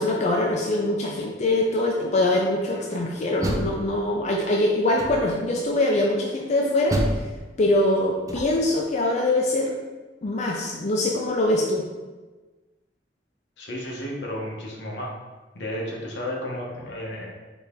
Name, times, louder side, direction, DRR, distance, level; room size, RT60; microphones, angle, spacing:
voice 1, 0.0-7.0 7.6-9.7 10.2-11.8, left 1 dB, 40° left, -2 dB, 0.5 m, -23 dB
Door, 3.2-4.4 5.0-5.5 6.9-8.8, equal, 20° right, 0.4 m, -30 dB
voice 2, 13.6-15.2 15.5-17.3, left 1 dB, 80° left, -2 dB, 1.0 m, -32 dB
4.1 x 3.4 x 3.6 m, 1.2 s
head